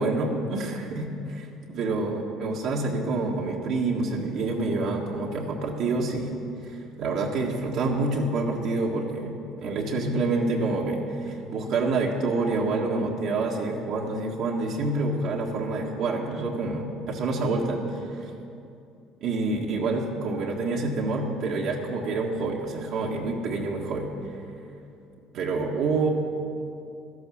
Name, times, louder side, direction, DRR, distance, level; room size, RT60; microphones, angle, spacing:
voice 1, 0.0-6.3 6.6-18.3 19.2-24.1 25.3-26.1, right 3 dB, 65° right, -2 dB, 1.6 m, -27 dB
12.5 x 11.5 x 6.4 m, 2.6 s
supercardioid pair, 100°, 0 cm